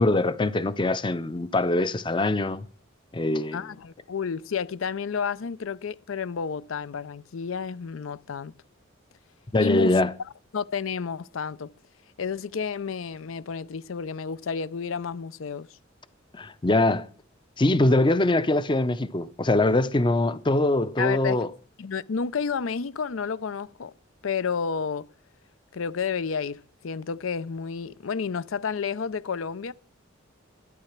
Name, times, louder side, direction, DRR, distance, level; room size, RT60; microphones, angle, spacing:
voice 1, 0.0-2.6 3.1-3.7 9.5-10.1 16.3-17.1 17.6-21.5, left 2 dB, 25° left, 0.6 m, -23 dB
voice 2, 3.5-8.5 9.6-10.0 10.5-11.7 12.2-15.7 21.0-21.4 21.8-23.9 24.2-25.1 25.7-29.7, left 6 dB, 80° left, 0.5 m, -31 dB
12.0 x 10.0 x 5.9 m
head